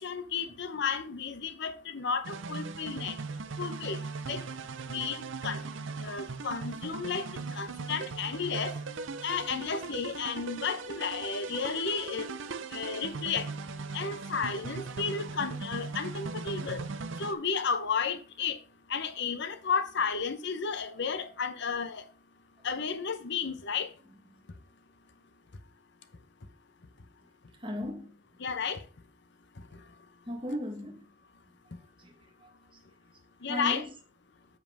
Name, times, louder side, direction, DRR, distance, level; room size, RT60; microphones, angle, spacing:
voice 1, 0.0-3.2 3.6-4.0 4.3-4.4 4.9-5.6 6.0-7.3 7.5-8.7 9.2-12.3 12.7-13.5 13.9-16.8 17.2-18.6 18.9-22.0 22.6-23.9 28.4-28.8 33.4-33.9, left 5 dB, 55° left, 0.8 m, -33 dB
sound 1, 2.2-17.3, right 4 dB, 60° right, 0.6 m, -39 dB
voice 2, 27.6-28.1 30.3-31.1 32.0-32.1 32.4-32.5 33.5-33.9, left 1 dB, 25° right, 1.7 m, -36 dB
7.6 x 7.2 x 3.5 m
head